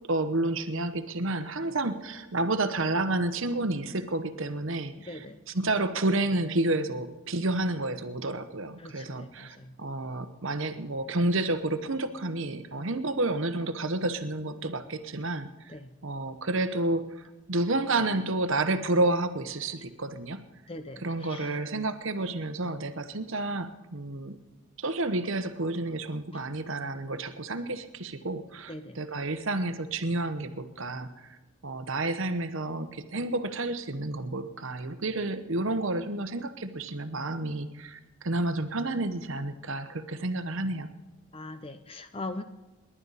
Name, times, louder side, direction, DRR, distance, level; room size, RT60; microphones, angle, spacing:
voice 1, 0.1-5.2 5.5-15.7 16.0-20.4 21.0-24.4 24.8-31.4 31.6-40.9, right 2 dB, 60° right, 10 dB, 1.0 m, -30 dB
voice 2, 5.0-5.4 8.8-9.8 15.7-15.9 20.7-21.6 26.3-26.4 28.7-29.0 41.3-42.4, left 2 dB, 25° left, 9 dB, 0.6 m, -41 dB
28.0 x 11.0 x 4.1 m, 1.1 s
head